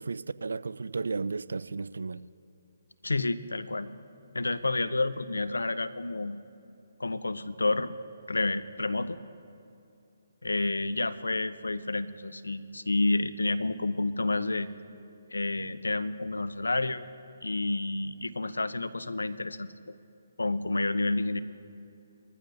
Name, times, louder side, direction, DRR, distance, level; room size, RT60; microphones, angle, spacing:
voice 1, 0.0-2.2, right 4 dB, 75° right, 0.3 m, -34 dB
voice 2, 3.0-3.9 4.3-6.4 7.0-8.0 8.3-9.2 10.4-14.7 15.3-17.0 17.4-19.7 20.4-21.4, left 2 dB, 90° left, 0.6 m, -29 dB
21.5 x 14.5 x 2.6 m
figure-of-eight pair, 145°, 0 cm